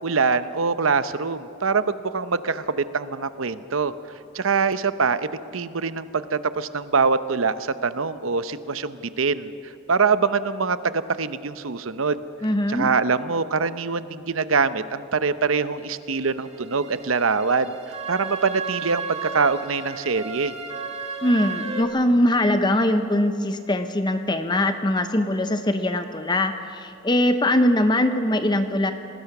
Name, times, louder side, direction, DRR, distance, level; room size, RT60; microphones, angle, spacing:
voice 1, 0.0-3.9 4.3-5.3 5.5-12.2 12.7-20.5, right 5 dB, 80° right, 13 dB, 0.8 m, -24 dB
voice 2, 12.4-12.9 21.2-28.9, left 1 dB, 20° left, 8 dB, 0.8 m, -22 dB
sound 1, 16.1-21.8, right 4 dB, 30° right, 2.0 m, -34 dB
26.5 x 19.5 x 6.0 m, 2.5 s
head